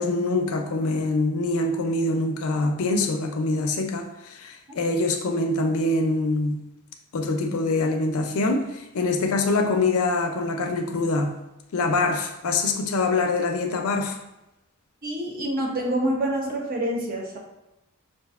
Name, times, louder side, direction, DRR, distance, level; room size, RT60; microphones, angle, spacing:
voice 1, 0.0-6.6 7.1-11.3 11.7-14.2, left 2 dB, 70° left, 5 dB, 0.5 m, -24 dB
voice 2, 15.0-17.4, right 1 dB, 40° right, 0 dB, 0.8 m, -27 dB
5.4 x 2.5 x 2.4 m, 0.93 s
head